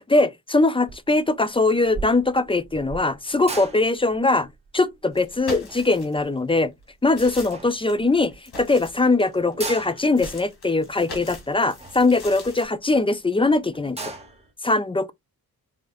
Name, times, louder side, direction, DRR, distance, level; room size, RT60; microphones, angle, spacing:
voice 1, 0.1-4.5 4.7-6.7 7.0-14.1 14.6-15.1, left 2 dB, 15° left, 0.4 m, -21 dB
sound 1, 0.9-1.2 1.5-7.1 7.5-8.3 8.7-8.8 9.0-9.1 9.4-13.0 13.4-13.5 13.7-14.5, right 3 dB, 15° right, 1.3 m, -38 dB
sound 2, 5.1-6.3 6.8-9.5 10.1-12.6, left 2 dB, 80° left, 2.4 m, -40 dB
4.9 x 3.9 x 2.5 m
cardioid pair, 100°, 37 cm